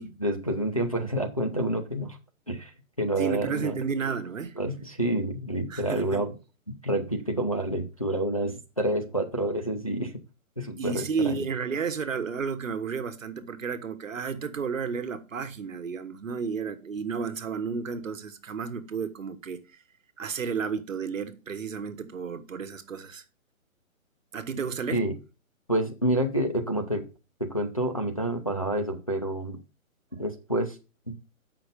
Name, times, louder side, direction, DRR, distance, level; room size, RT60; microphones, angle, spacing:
voice 1, 0.2-2.2 2.5-2.7 3.0-3.9 4.6-6.3 6.7-10.1 10.6-11.4 24.9-25.1 25.7-27.1 27.4-29.6 30.2-30.8 31.1-31.2, right 1 dB, 25° left, 0.5 m, -28 dB
voice 2, 3.2-4.6 5.7-6.2 10.8-19.6 20.2-23.2 24.3-25.0, right 6 dB, 65° right, 1.3 m, -32 dB
7.8 x 5.8 x 5.0 m
hypercardioid pair, 180°, 42 cm